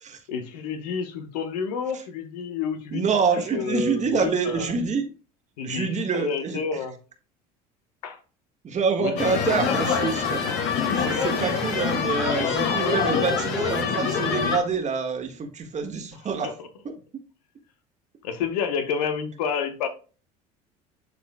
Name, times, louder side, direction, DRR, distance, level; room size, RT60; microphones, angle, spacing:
voice 1, 0.3-3.0 3.5-4.7 5.6-6.9 8.0-8.2 9.0-9.4 9.6-9.8 16.1-16.7 18.2-19.9, left 6 dB, 75° left, 1.1 m, -30 dB
voice 2, 2.9-5.1 5.6-6.6 8.6-10.4 10.9-16.5 16.8-16.9, right 5 dB, 35° right, 1.5 m, -26 dB
sound 1, 9.2-14.6, left 6 dB, 60° left, 2.0 m, -25 dB
11.5 x 4.2 x 2.2 m
hypercardioid pair, 70°, 20 cm